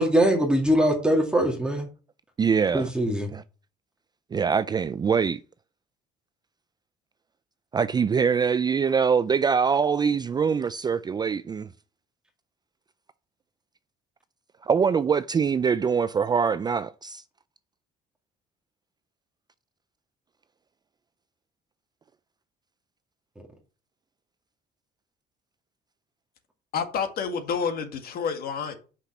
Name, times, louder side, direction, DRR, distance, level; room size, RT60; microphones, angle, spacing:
voice 1, 0.0-1.9 2.7-3.3, right 1 dB, 5° right, 2.0 m, -22 dB
voice 2, 2.4-2.9 3.3-3.4 4.3-5.4 7.7-11.7 14.6-17.2, right 6 dB, 25° right, 0.3 m, -23 dB
voice 3, 26.7-28.7, left 6 dB, 65° left, 1.8 m, -29 dB
6.0 x 5.7 x 7.1 m
cardioid pair, 110°, 17 cm